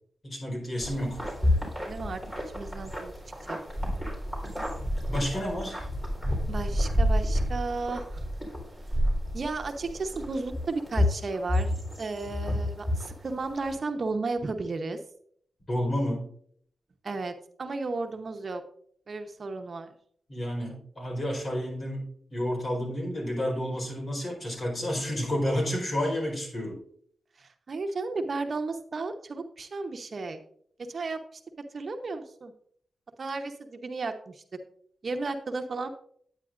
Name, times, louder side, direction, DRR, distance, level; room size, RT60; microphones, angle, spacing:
voice 1, 0.2-1.2 5.1-5.9 15.7-16.3 20.3-26.8, equal, 45° left, 0 dB, 4.2 m, -30 dB
sound 1, 0.8-13.8, left 1 dB, 15° left, 4.0 m, -30 dB
voice 2, 1.9-2.2 2.5-3.1 3.5-3.6 6.5-8.2 9.3-15.0 17.0-17.3 17.6-18.6 19.1-19.9 27.4-30.4 30.9-31.4 31.7-32.5 33.2-34.4 35.0-35.9, right 3 dB, 55° right, 6 dB, 0.9 m, -33 dB
9.8 x 9.1 x 2.6 m, 0.62 s
cardioid pair, 60°, 0 cm